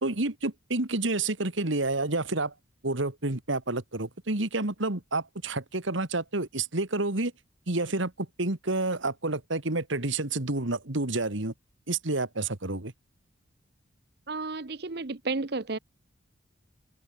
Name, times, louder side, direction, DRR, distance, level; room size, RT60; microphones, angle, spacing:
voice 1, 0.0-2.5 2.8-7.3 7.7-11.5 11.9-12.9, right 2 dB, 75° right, 2.1 m, -29 dB
voice 2, 14.3-15.8, right 3 dB, 55° right, 0.9 m, -32 dB
head